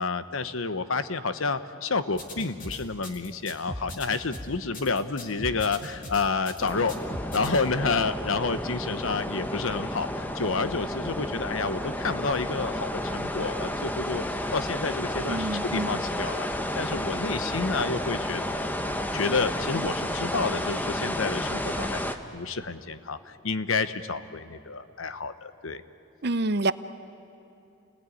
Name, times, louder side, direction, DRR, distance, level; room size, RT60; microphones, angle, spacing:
voice 1, 0.0-7.0 7.3-18.4 19.1-25.8, left 4 dB, 80° left, 12 dB, 1.0 m, -29 dB
sound 1, 2.1-7.6, left 1 dB, 40° left, 2.6 m, -39 dB
sound 2, 6.6-22.2, left 1 dB, 10° left, 0.9 m, -31 dB
voice 2, 15.3-16.0 26.2-26.7, right 2 dB, 50° right, 14 dB, 0.7 m, -27 dB
29.0 x 20.0 x 9.9 m, 2.8 s
head